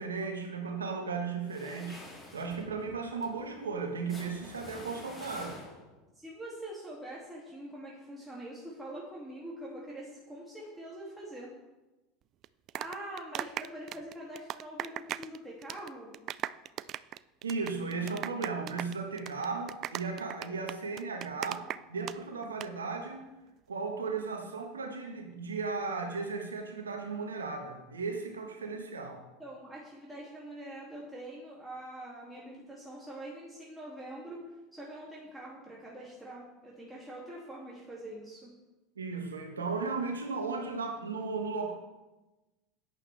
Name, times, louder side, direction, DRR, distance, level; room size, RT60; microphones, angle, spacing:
voice 1, 0.0-2.0 2.3-5.6 17.4-23.3 23.7-29.2 39.0-41.7, right 4 dB, 85° right, 3 dB, 1.5 m, -36 dB
sound 1, 1.4-6.1, left 1 dB, 15° left, 3.8 m, -49 dB
voice 2, 6.1-11.5 12.7-16.1 29.4-34.4 34.7-38.5, right 1 dB, 5° right, -5 dB, 2.7 m, -44 dB
sound 2, 12.4-15.4 15.6-22.2 22.4-22.7, right 12 dB, 45° right, 0.3 m, -38 dB
11.0 x 9.3 x 3.5 m, 1.1 s
hypercardioid pair, 80°, 0 cm